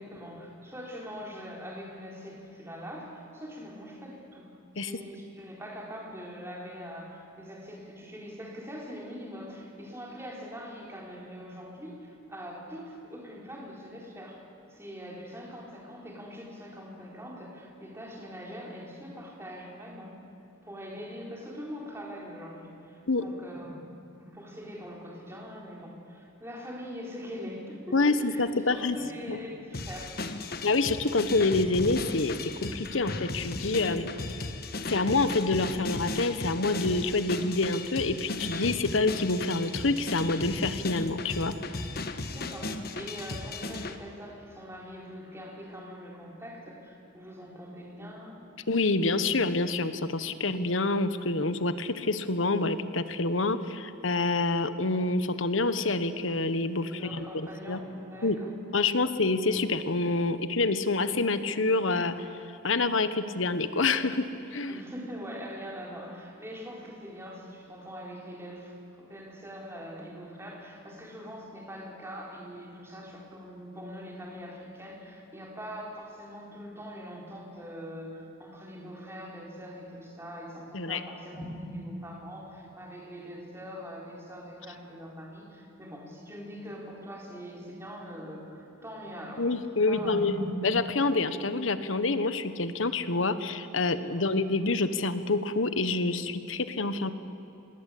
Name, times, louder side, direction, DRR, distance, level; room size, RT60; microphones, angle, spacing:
voice 1, 0.0-4.5 4.8-14.4 14.7-20.2 20.6-23.8 24.2-30.2 42.2-48.4 56.9-58.5 64.7-90.6 94.1-94.3, equal, 15° right, -2 dB, 4.2 m, -42 dB
voice 2, 27.9-29.0 29.3-29.4 30.6-34.1 34.9-41.5 48.7-57.8 58.2-58.4 58.7-62.3 62.6-64.7 80.7-81.0 89.4-90.3 90.6-97.1, left 3 dB, 85° left, 11 dB, 1.2 m, -27 dB
sound 1, 29.7-44.0, left 2 dB, 50° left, 1.3 m, -36 dB
26.5 x 20.5 x 8.5 m, 2.9 s
head